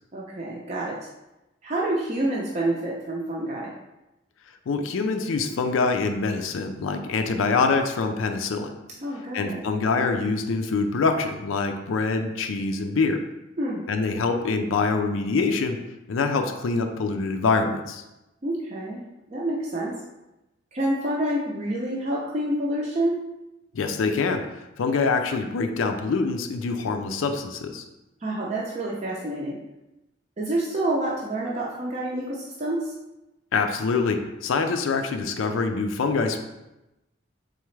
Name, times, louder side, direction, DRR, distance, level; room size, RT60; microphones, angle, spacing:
voice 1, 0.1-1.1 1.6-3.7 9.0-9.6 13.6-13.8 18.4-19.0 19.3-19.9 20.7-23.2 28.2-29.6 30.4-32.9, right 1 dB, 35° right, -4 dB, 0.5 m, -28 dB
voice 2, 4.7-8.7 9.3-13.2 13.9-15.8 16.1-18.0 23.7-27.8 33.5-36.4, left 4 dB, 90° left, 6 dB, 0.4 m, -25 dB
3.8 x 3.4 x 3.2 m, 0.97 s
head